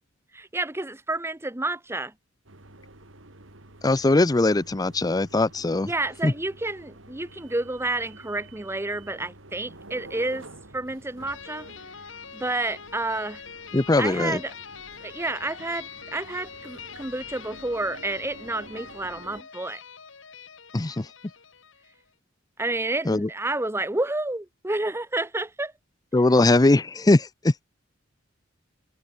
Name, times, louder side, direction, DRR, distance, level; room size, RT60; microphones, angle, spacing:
voice 1, 0.3-2.1 5.8-10.4 10.7-11.7 12.3-13.4 14.0-14.5 15.0-19.8 22.6-25.7, right 2 dB, 15° right, 1.0 m, -30 dB
sound 1, 2.5-19.4, right 2 dB, 85° right, 3.7 m, -49 dB
voice 2, 3.8-5.9 6.2-6.3 13.7-14.4 20.7-21.1 23.1-23.3 26.1-27.5, left 2 dB, 20° left, 0.5 m, -20 dB
sound 2, 11.3-22.0, left 6 dB, 75° left, 2.5 m, -44 dB
head